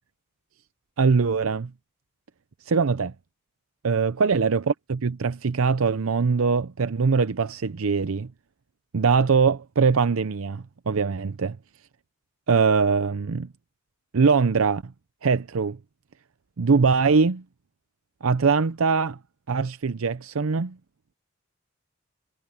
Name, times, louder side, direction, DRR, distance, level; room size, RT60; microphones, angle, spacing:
voice 1, 1.0-1.7 2.7-3.1 3.8-8.3 8.9-11.6 12.5-13.5 14.1-14.9 15.2-15.8 16.6-17.4 18.2-19.2 19.5-20.8, right 5 dB, 90° right, 0.6 m, -22 dB
head